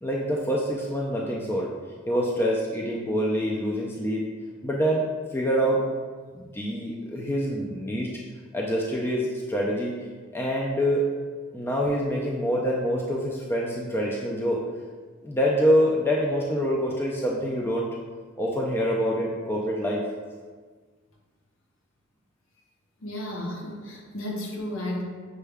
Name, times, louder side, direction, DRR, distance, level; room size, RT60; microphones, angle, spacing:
voice 1, 0.0-1.7 2.1-4.3 4.6-5.1 5.3-5.8 6.4-8.1 8.5-9.9 10.3-11.1 11.5-14.6 15.2-17.9 18.4-20.0, equal, 10° left, -3 dB, 0.3 m, -25 dB
voice 2, 23.0-25.0, left 1 dB, 70° left, -1 dB, 0.8 m, -33 dB
6.3 x 2.2 x 3.3 m, 1.5 s
head